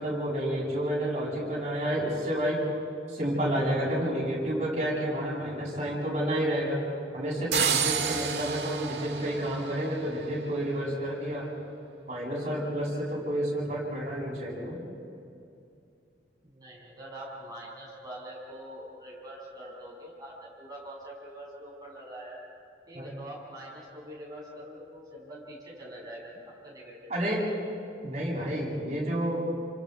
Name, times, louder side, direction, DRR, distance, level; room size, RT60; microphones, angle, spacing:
voice 1, 0.0-2.6 3.1-6.8 7.1-11.5 12.1-14.8 22.9-23.1 27.1-27.4 28.0-29.4, right 1 dB, 40° right, -6 dB, 8.0 m, -30 dB
sound 1, 7.5-10.4, right 7 dB, 70° right, 2.0 m, -30 dB
voice 2, 16.4-22.4 22.9-27.4, right 1 dB, 20° right, -4 dB, 6.9 m, -44 dB
29.5 x 26.0 x 4.8 m, 2.6 s
head